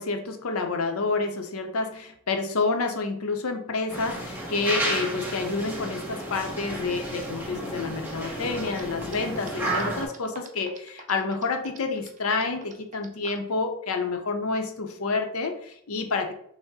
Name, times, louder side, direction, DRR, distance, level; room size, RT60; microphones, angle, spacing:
voice 1, 0.0-16.3, left 3 dB, 80° left, 5 dB, 0.7 m, -29 dB
sound 1, 3.9-10.1, right 1 dB, 10° right, 0.9 m, -32 dB
sound 2, 8.5-13.5, right 5 dB, 35° right, 0.5 m, -44 dB
5.8 x 2.1 x 4.1 m, 0.70 s
head